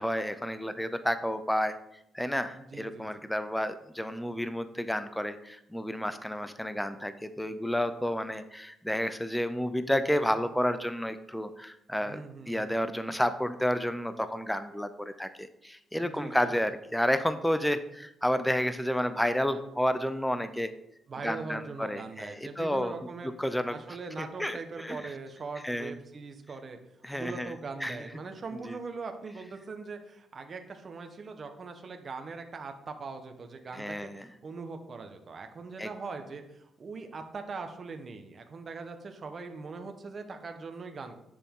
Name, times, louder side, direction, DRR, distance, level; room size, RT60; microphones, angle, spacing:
voice 1, 0.0-1.7 2.1-20.7 21.2-22.9 23.4-23.8 24.2-25.0 25.6-25.9 27.0-27.5 27.8-28.0 28.7-28.8 33.7-34.3 35.8-35.9, equal, 5° left, 11 dB, 0.7 m, -31 dB
voice 2, 2.7-3.2 12.0-12.7 16.0-16.5 21.1-23.3 23.7-26.8 27.1-41.2, right 4 dB, 40° right, 5 dB, 1.2 m, -41 dB
10.0 x 6.9 x 3.8 m, 0.80 s
cardioid pair, 90°, 0 cm